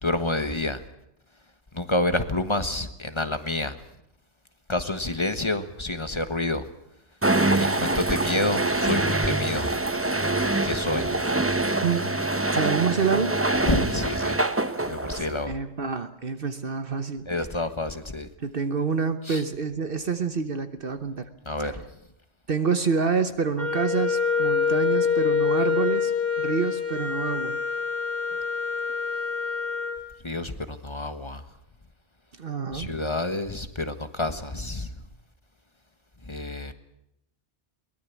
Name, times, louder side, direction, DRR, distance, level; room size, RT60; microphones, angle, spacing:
voice 1, 0.0-0.8 1.7-3.8 4.7-6.6 7.5-9.7 10.6-11.2 13.6-14.4 14.9-15.5 17.3-18.3 19.3-19.4 21.5-21.8 30.2-31.4 32.7-34.9 36.3-36.7, left 2 dB, 25° left, 10 dB, 1.4 m, -28 dB
sound 1, 7.2-15.4, right 2 dB, 15° right, 0.9 m, -25 dB
voice 2, 11.8-12.1 12.5-13.4 15.1-17.3 18.4-21.3 21.6-21.8 22.5-26.1 26.4-27.6 32.4-32.9, right 5 dB, 60° right, 9 dB, 1.3 m, -27 dB
Wind instrument woodwind instrument, 23.6-30.0, left 5 dB, 60° left, 2.8 m, -26 dB
22.5 x 19.5 x 8.3 m, 0.79 s
omnidirectional pair, 1.1 m